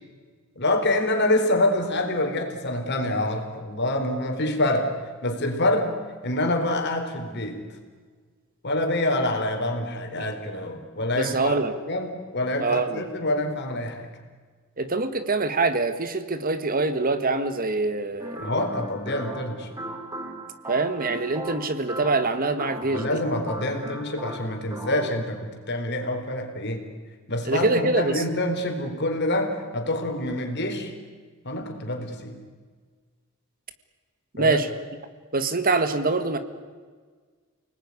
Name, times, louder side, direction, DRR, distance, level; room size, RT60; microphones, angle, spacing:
voice 1, 0.6-4.9 5.2-5.9 6.2-7.6 8.6-11.6 11.9-14.1 18.4-19.7 22.9-26.8 27.3-30.9 31.4-32.4 34.4-34.6, left 1 dB, 55° left, 5 dB, 4.1 m, -26 dB
voice 2, 11.2-11.8 12.6-13.0 14.8-18.5 20.7-23.2 27.4-28.2 34.3-34.7 35.3-36.4, right 3 dB, 45° right, 10 dB, 1.8 m, -24 dB
sound 1, 18.2-25.2, right 1 dB, 15° right, 4.4 m, -37 dB
29.5 x 19.5 x 9.8 m, 1.5 s
head